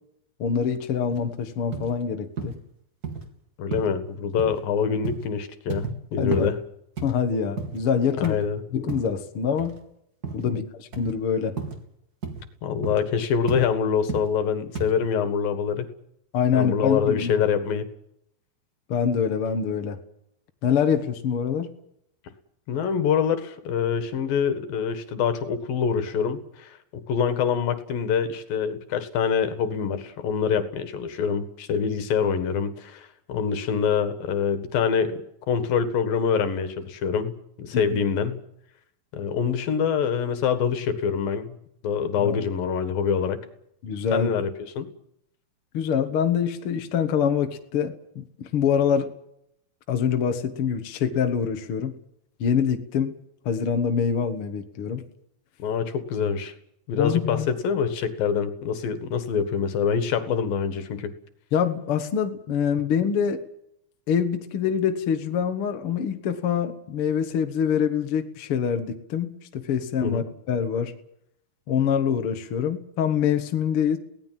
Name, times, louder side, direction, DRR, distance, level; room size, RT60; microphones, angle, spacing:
voice 1, 0.4-2.6 6.2-6.5 7.0-8.3 8.7-9.7 10.3-11.6 16.3-17.3 18.9-20.0 20.6-21.7 37.7-37.8 42.2-42.4 43.8-44.3 45.7-49.1 49.9-51.9 52.4-53.2 53.5-55.0 57.0-57.5 61.5-63.4 64.1-70.9 71.7-74.0, left 7 dB, 50° left, 6 dB, 2.0 m, -25 dB
sound 1, 1.1-1.2 1.7-1.9 2.4-2.6 3.0-3.2 3.7-3.9 4.4-4.6 5.0-5.3 5.7-6.0 6.3-6.5 7.0-7.8 8.2-8.5 8.9-9.2 9.6-9.8 10.2-10.5 10.9-11.1 11.6-11.8 12.2-12.4 12.8-13.1 13.5-13.7 14.1-14.3 14.7-14.9, right 4 dB, 30° right, 2.9 m, -32 dB
voice 2, 3.6-6.6 8.2-8.6 10.4-10.6 12.6-15.9 16.5-17.9 22.7-35.2 35.5-38.4 39.1-41.6 41.8-43.4 44.1-44.9 55.6-56.5 56.9-61.1 70.0-70.2, left 7 dB, 75° left, 10 dB, 3.5 m, -25 dB
23.5 x 18.0 x 7.6 m, 0.73 s
omnidirectional pair, 4.2 m